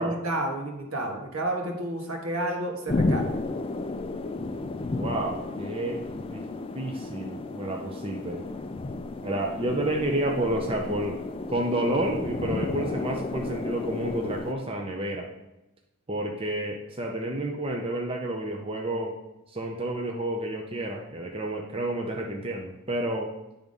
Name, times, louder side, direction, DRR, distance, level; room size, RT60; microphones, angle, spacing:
voice 1, 0.0-3.4, right 1 dB, 70° right, 2 dB, 1.5 m, -31 dB
sound 1, 2.9-14.5, left 2 dB, 25° left, 0.3 m, -32 dB
voice 2, 4.9-6.4 6.7-8.4 9.2-11.2 11.5-15.3 16.1-19.1 19.5-23.3, right 1 dB, 25° right, 1 dB, 0.6 m, -30 dB
9.2 x 3.6 x 5.2 m, 0.93 s
head